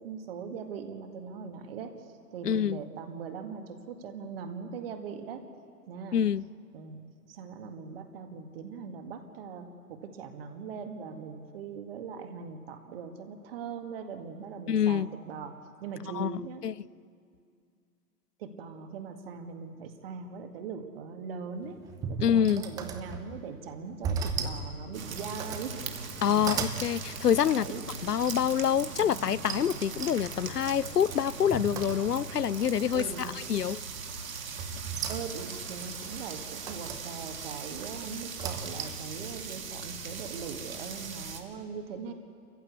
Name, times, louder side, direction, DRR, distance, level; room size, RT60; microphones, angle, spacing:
voice 1, 0.0-1.9 2.3-5.4 5.9-6.2 6.7-7.0 7.3-15.5 15.8-16.6 18.4-21.8 22.1-25.7 26.3-26.6 27.4-27.9 32.9-33.3 35.1-42.1, right 6 dB, 35° right, 2.0 m, -40 dB
voice 2, 2.4-2.8 6.1-6.5 14.7-15.1 16.1-16.7 22.2-22.6 26.2-27.7 28.0-33.8, left 9 dB, 75° left, 0.6 m, -26 dB
sound 1, 21.6-23.5 24.0-24.6 25.0-25.7 26.2-26.8 28.2-28.7 29.5-32.4 32.7-33.2 34.6-35.6 36.3-37.0 38.2-39.1, right 5 dB, 10° right, 0.7 m, -37 dB
sound 2, 24.9-41.4, right 5 dB, 55° right, 2.9 m, -40 dB
29.5 x 15.0 x 8.4 m
figure-of-eight pair, 120°, 47 cm